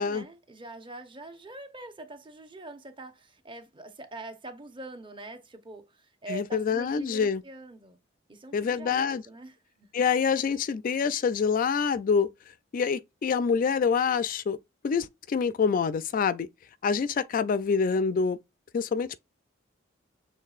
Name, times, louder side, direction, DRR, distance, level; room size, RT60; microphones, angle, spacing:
voice 1, 0.0-8.0 8.3-9.9, right 2 dB, 25° right, 0.8 m, -44 dB
voice 2, 6.3-7.4 8.5-9.2 9.9-12.3 12.7-14.6 14.8-16.5 16.8-18.4 18.7-19.2, left 6 dB, 45° left, 0.3 m, -26 dB
6.5 x 3.2 x 2.4 m
head